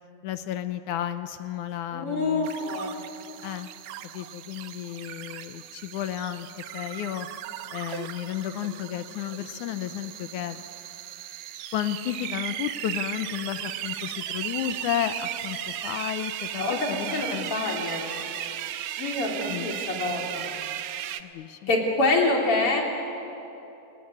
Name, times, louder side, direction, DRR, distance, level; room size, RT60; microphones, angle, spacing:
voice 1, 0.2-2.5 3.4-3.7 4.1-6.5 6.7-7.3 7.7-10.6 11.7-17.5 19.5-19.7 21.2-21.7, left 11 dB, 75° left, 10 dB, 2.0 m, -32 dB
voice 2, 1.9-3.1 16.6-18.1 19.0-20.5 21.7-22.8, left 2 dB, 40° left, 0 dB, 4.0 m, -26 dB
sound 1, 2.4-21.2, right 11 dB, 75° right, 1.7 m, -36 dB
29.0 x 19.0 x 9.7 m, 2.9 s
omnidirectional pair, 4.1 m